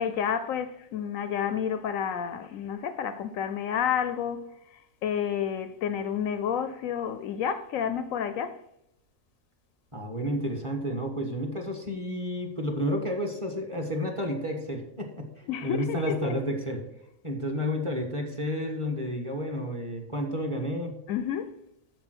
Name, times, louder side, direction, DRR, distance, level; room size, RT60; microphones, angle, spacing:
voice 1, 0.0-8.6 15.5-16.4 21.1-21.6, left 8 dB, 70° left, 0.9 m, -30 dB
voice 2, 9.9-15.3 15.6-16.8 17.2-21.0, equal, 20° right, 1.3 m, -31 dB
7.0 x 6.9 x 6.2 m
omnidirectional pair, 1.6 m